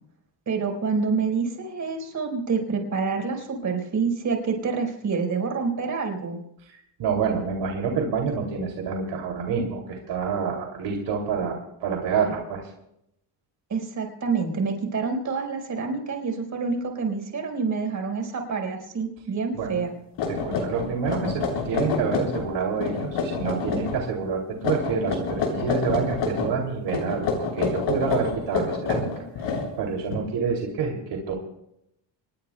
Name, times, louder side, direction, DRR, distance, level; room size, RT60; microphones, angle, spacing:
voice 1, 0.5-6.4 13.7-19.9, right 5 dB, 40° right, 3 dB, 4.8 m, -27 dB
voice 2, 6.7-12.7 19.6-19.7 20.3-29.1 29.4-31.3, right 5 dB, 70° right, 0 dB, 3.0 m, -28 dB
sound 1, 19.7-19.8 20.2-22.5 22.8-24.0 24.6-26.5 26.9-30.1, left 4 dB, 75° left, 7.4 m, -27 dB
26.0 x 21.0 x 2.3 m, 0.78 s
cardioid pair, 130°, 44 cm